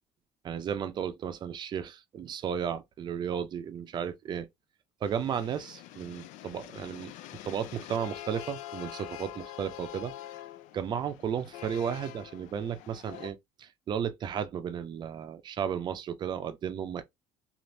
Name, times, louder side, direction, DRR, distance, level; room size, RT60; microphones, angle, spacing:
voice 1, 0.4-4.5 5.0-7.1 7.4-10.1 10.7-17.0, right 8 dB, 35° right, 0.5 m, -34 dB
sound 1, 5.0-13.3, left 13 dB, 70° left, 0.4 m, -45 dB
3.1 x 2.5 x 2.6 m
cardioid pair, 145°, 13 cm